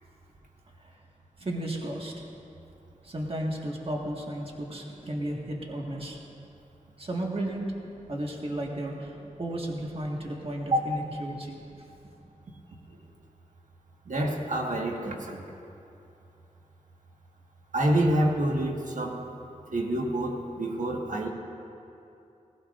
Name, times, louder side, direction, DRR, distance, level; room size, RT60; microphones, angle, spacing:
voice 1, 1.4-2.1 3.0-6.2 7.0-7.7 8.1-11.6, right 1 dB, 45° right, -1 dB, 1.7 m, -34 dB
voice 2, 14.1-15.4 17.7-19.2 19.7-21.3, right 1 dB, 75° right, 0 dB, 1.5 m, -27 dB
18.0 x 16.0 x 2.5 m, 2.7 s
wide cardioid pair, 55°, 13 cm